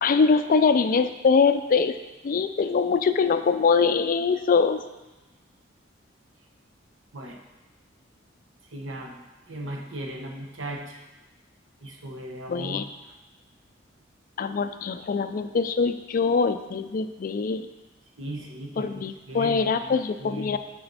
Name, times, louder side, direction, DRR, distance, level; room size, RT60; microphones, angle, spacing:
voice 1, 0.0-2.0 2.2-4.8 12.5-12.8 14.4-17.7 18.8-20.6, left 5 dB, 45° left, 10 dB, 0.4 m, -23 dB
voice 2, 8.7-9.1 9.5-11.0 11.8-12.8 18.2-20.6, right 1 dB, 80° right, 1 dB, 1.0 m, -37 dB
8.8 x 4.3 x 4.0 m, 1.1 s
head